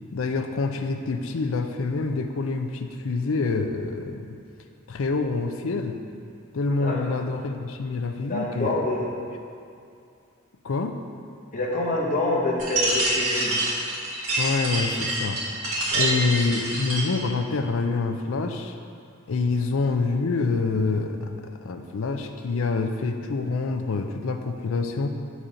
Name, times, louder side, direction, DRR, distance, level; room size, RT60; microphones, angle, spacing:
voice 1, 0.1-4.4 4.9-5.9 6.5-8.8 10.6-10.9 14.4-15.4 15.9-18.7 19.3-21.3 21.6-25.1, left 3 dB, 65° left, 6 dB, 0.5 m, -26 dB
voice 2, 6.8-7.2 8.3-9.1 11.5-13.6 15.9-16.3, left 2 dB, 35° left, -3 dB, 1.1 m, -27 dB
sound 1, 12.6-17.2, right 1 dB, 75° right, 1.7 m, -26 dB
7.3 x 4.1 x 5.0 m, 2.4 s
head